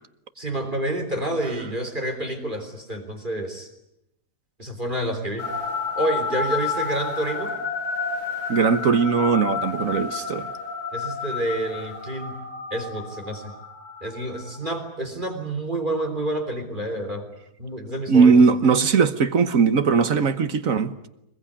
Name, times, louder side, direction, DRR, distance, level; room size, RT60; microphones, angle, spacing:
voice 1, 0.4-3.7 4.6-5.5 6.0-7.5 10.9-12.4 12.7-13.5 14.0-17.3 17.6-18.3 18.6-18.7, right 1 dB, 30° right, 3.7 m, -28 dB
sound 1, 5.4-14.8, left 4 dB, 55° left, 5.2 m, -31 dB
voice 2, 8.5-10.5 18.1-20.9, right 5 dB, 60° right, 1.5 m, -19 dB
23.5 x 21.5 x 9.9 m
omnidirectional pair, 1.7 m